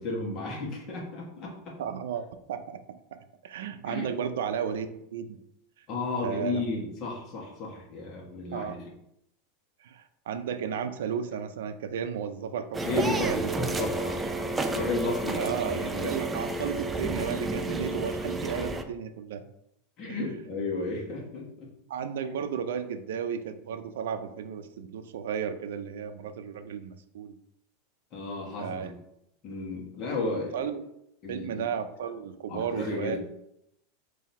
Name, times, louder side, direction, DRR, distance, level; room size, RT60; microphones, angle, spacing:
voice 1, 0.0-1.7 3.8-4.1 5.9-8.9 12.8-16.1 17.6-18.2 20.0-21.7 28.1-29.0 29.4-30.7 31.2-31.7 32.5-33.2, left 3 dB, 35° left, -2 dB, 1.2 m, -34 dB
voice 2, 1.8-5.4 5.8-5.9 6.2-6.6 8.5-8.9 9.8-13.6 15.4-19.4 20.1-20.2 21.9-27.4 28.6-28.9 30.5-30.8 31.3-33.2, right 7 dB, 85° right, 10 dB, 0.4 m, -34 dB
sound 1, 12.7-18.8, right 2 dB, 10° right, 0.3 m, -31 dB
3.9 x 2.7 x 4.2 m, 0.80 s
supercardioid pair, 150°, 0 cm